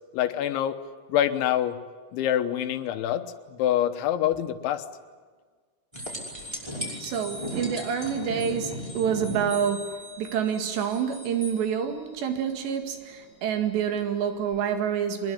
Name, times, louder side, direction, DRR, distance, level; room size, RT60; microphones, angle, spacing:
voice 1, 0.1-0.8 1.1-1.8 2.1-4.8, left 11 dB, 85° left, 3.6 m, -26 dB
sound 1, 5.9-11.6 14.5-14.6, equal, 5° right, 5.2 m, -37 dB
voice 2, 6.4-15.3, right 7 dB, 70° right, 4.2 m, -28 dB
24.0 x 21.5 x 9.8 m
omnidirectional pair, 5.2 m